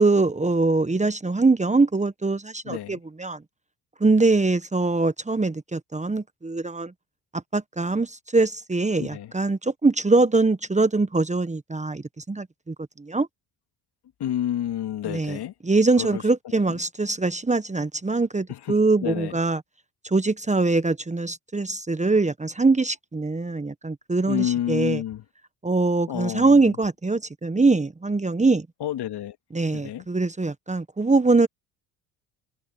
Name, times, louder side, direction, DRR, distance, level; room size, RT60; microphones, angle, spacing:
voice 1, 0.0-3.4 4.0-6.9 7.5-13.3 15.0-15.4 15.6-19.6 20.0-25.0 25.6-28.7 29.5-31.5, right 3 dB, 15° right, 1.3 m, -23 dB
voice 2, 2.7-3.0 9.0-9.3 14.2-15.5 16.0-16.8 18.5-18.7 19.0-19.3 24.3-25.2 26.1-26.8 28.8-29.4 29.7-30.0, left 11 dB, 60° left, 2.3 m, -30 dB
hypercardioid pair, 60°, 45 cm